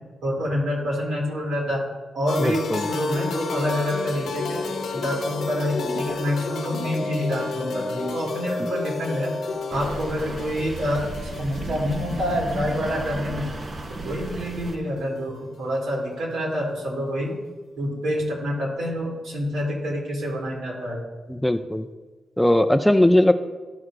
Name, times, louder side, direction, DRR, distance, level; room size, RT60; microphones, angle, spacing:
voice 1, 0.2-1.8 2.1-4.6 4.9-9.3 9.7-13.5 14.0-17.3 17.8-21.0, equal, 85° right, -3 dB, 2.7 m, -27 dB
sound 1, 2.3-15.2, left 5 dB, 85° left, 0.7 m, -34 dB
voice 2, 2.4-2.9 21.3-21.9 22.4-23.3, left 1 dB, 5° left, 8 dB, 0.3 m, -19 dB
sound 2, 4.4-10.1, left 3 dB, 55° left, 0.8 m, -32 dB
sound 3, 9.7-14.8, right 2 dB, 35° right, 0.6 m, -34 dB
12.5 x 6.4 x 2.4 m, 1.3 s
wide cardioid pair, 120°, 0 cm